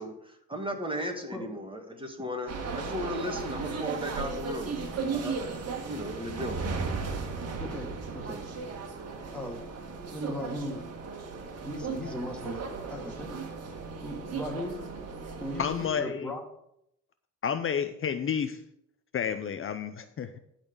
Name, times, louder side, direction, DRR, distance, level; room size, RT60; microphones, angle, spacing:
voice 1, 0.0-4.7 5.1-6.6, equal, 15° right, 3 dB, 2.1 m, -36 dB
ambience metro wagon train interior city Moscow, 2.5-15.9, right 4 dB, 55° right, 1.8 m, -36 dB
voice 2, 7.6-8.4 9.3-9.6 10.1-10.8 11.6-12.6 12.9-13.3 14.0-14.8 15.4-16.4, left 1 dB, 5° left, 1 dB, 2.5 m, -37 dB
voice 3, 15.6-16.3 17.4-18.6 19.1-20.4, left 7 dB, 45° left, 10 dB, 0.7 m, -30 dB
12.0 x 4.3 x 7.0 m, 0.76 s
cardioid pair, 90°, 30 cm